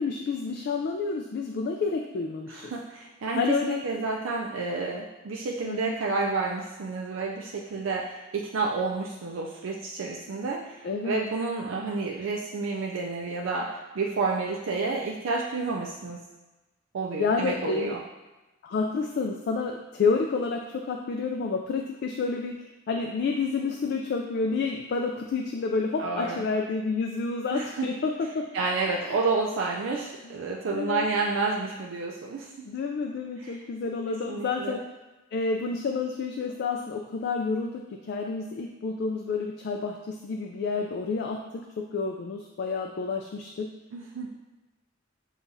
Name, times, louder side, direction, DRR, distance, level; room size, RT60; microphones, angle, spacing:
voice 1, 0.0-2.7 3.4-3.8 5.6-6.0 10.8-11.2 17.2-17.9 18.6-22.6 22.9-28.5 29.0-29.2 30.7-31.1 32.7-34.8 35.3-43.7, left 4 dB, 55° left, 2 dB, 0.3 m, -29 dB
voice 2, 2.5-16.2 16.9-18.0 26.0-26.4 27.5-27.9 28.5-32.5 33.4-33.7 34.1-34.8 43.9-44.4, right 4 dB, 75° right, -1 dB, 0.4 m, -30 dB
7.0 x 2.4 x 2.7 m, 1.1 s
head